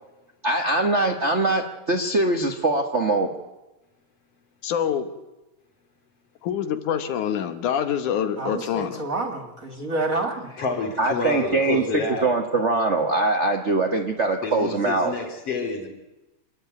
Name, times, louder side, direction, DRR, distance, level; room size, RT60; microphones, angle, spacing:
voice 1, 0.4-3.3 11.0-11.8 12.2-15.1, right 2 dB, 70° right, 4 dB, 0.6 m, -22 dB
voice 2, 4.6-5.1 6.4-9.0, left 9 dB, 80° left, 9 dB, 2.7 m, -26 dB
voice 3, 8.4-10.6, right 2 dB, 30° right, 5 dB, 2.2 m, -28 dB
voice 4, 10.6-12.3 14.4-15.9, left 4 dB, 50° left, 3 dB, 3.9 m, -28 dB
27.5 x 11.0 x 9.3 m, 1.0 s
omnidirectional pair, 3.5 m